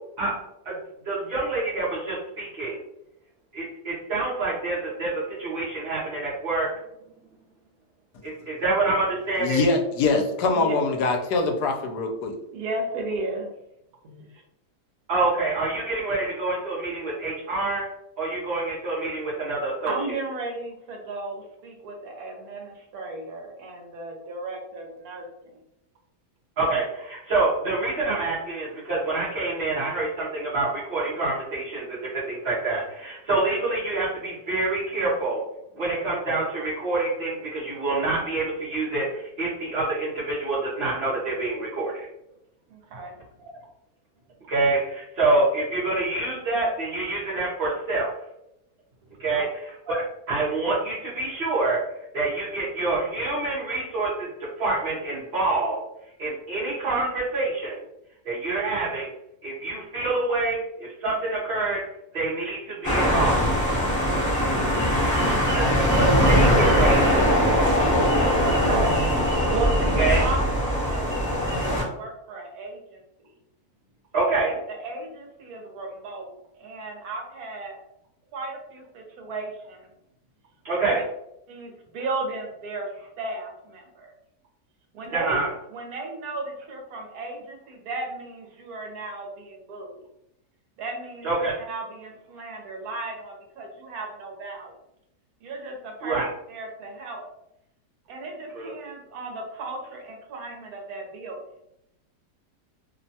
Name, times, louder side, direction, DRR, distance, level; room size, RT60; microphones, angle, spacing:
voice 1, 1.0-2.8 3.5-6.7 8.2-9.7 15.1-17.9 18.2-20.2 26.6-35.4 35.7-42.1 44.5-48.1 49.2-51.8 52.1-54.3 54.6-55.8 56.2-57.8 58.2-59.1 59.4-61.8 62.1-63.5 65.5-65.7 65.9-67.4 70.0-70.2 74.1-74.6 80.6-81.0 85.1-85.5 91.2-91.5 96.0-96.3 98.5-98.7, right 2 dB, 50° right, -9 dB, 0.8 m, -26 dB
voice 2, 9.4-12.4, left 3 dB, 80° left, 3 dB, 1.1 m, -23 dB
voice 3, 12.5-13.5 14.0-14.4 19.8-25.5 42.7-43.1 49.3-49.5 64.4-64.9 65.2-65.6 67.9-73.3 74.7-76.3 76.6-77.8 78.3-79.9 80.8-80.9 81.5-84.1 84.9-85.3 85.7-90.0 90.8-94.7 95.4-96.2 96.5-97.3 98.1-101.4, right 2 dB, 70° right, 1 dB, 1.1 m, -35 dB
sound 1, 62.8-71.8, equal, 15° left, 0.9 m, -21 dB
3.0 x 2.2 x 2.7 m, 0.80 s
omnidirectional pair, 1.7 m